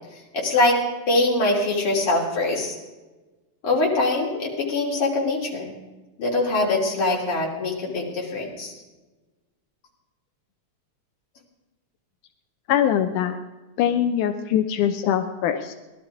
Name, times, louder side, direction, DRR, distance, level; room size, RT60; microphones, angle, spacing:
voice 1, 0.3-0.8 1.1-2.7 3.6-5.7 6.2-8.7, left 2 dB, 45° left, -3 dB, 4.0 m, -23 dB
voice 2, 12.7-13.4 13.8-15.7, left 9 dB, 85° left, 7 dB, 2.3 m, -22 dB
18.0 x 12.0 x 4.9 m, 1.2 s
omnidirectional pair, 3.5 m